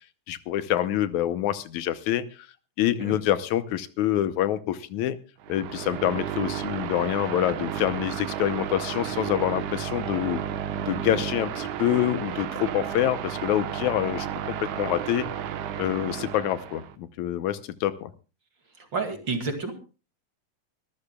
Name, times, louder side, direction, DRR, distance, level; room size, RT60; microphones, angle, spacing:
voice 1, 0.3-2.5 2.8-5.2 5.5-10.4 10.9-15.3 15.8-18.1, left 12 dB, 80° left, 12 dB, 2.2 m, -26 dB
sound 1, 5.4-16.9, right 10 dB, 90° right, 2.6 m, -32 dB
voice 2, 18.8-19.7, right 4 dB, 40° right, 5 dB, 2.8 m, -30 dB
25.0 x 13.5 x 2.3 m, 0.33 s
omnidirectional pair, 3.4 m